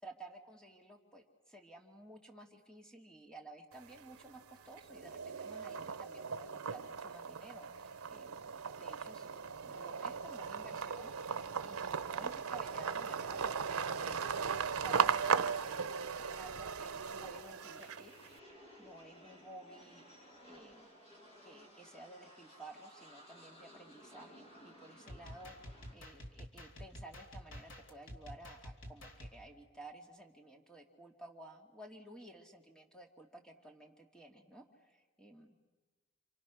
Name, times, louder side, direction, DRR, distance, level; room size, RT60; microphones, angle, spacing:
voice 1, 0.0-9.3 9.6-18.1 18.8-20.9 21.4-35.6, right 2 dB, 5° left, 2 dB, 2.5 m, -54 dB
sound 1, 3.7-4.4 4.8-18.3, right 6 dB, 90° right, 0.8 m, -37 dB
sound 2, 16.9-25.9, equal, 30° left, 5.4 m, -58 dB
sound 3, 25.1-29.4, equal, 60° left, 2.9 m, -49 dB
30.0 x 26.5 x 6.4 m, 1.3 s
head